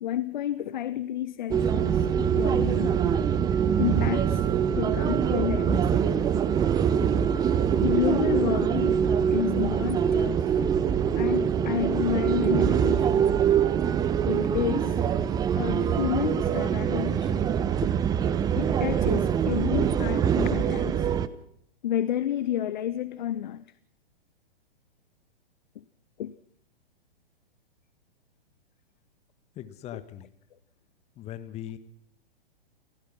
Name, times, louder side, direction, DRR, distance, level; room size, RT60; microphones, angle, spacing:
voice 1, 0.0-3.0 3.8-4.5 4.8-6.2 7.8-9.0 9.3-10.5 11.2-13.3 14.3-15.0 15.6-17.5 17.8-17.9 18.6-21.0 21.8-23.6 25.8-25.9 26.2-26.3 29.9-30.0, left 11 dB, 50° left, 0.8 m, -30 dB
sound 1, 1.5-21.3, right 8 dB, 15° right, 0.7 m, -24 dB
voice 2, 29.5-30.3 31.2-31.8, left 11 dB, 20° left, 1.5 m, -39 dB
28.5 x 15.5 x 6.1 m
figure-of-eight pair, 115°, 30 cm